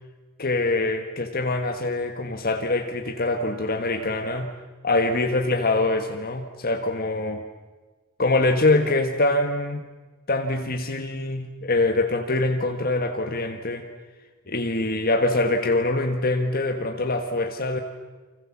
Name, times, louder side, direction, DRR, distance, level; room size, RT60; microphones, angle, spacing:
voice 1, 0.4-4.5 4.8-7.4 8.2-9.8 10.3-13.9 14.5-17.8, left 2 dB, 45° left, 5 dB, 1.6 m, -24 dB
29.5 x 25.5 x 7.5 m, 1.3 s
head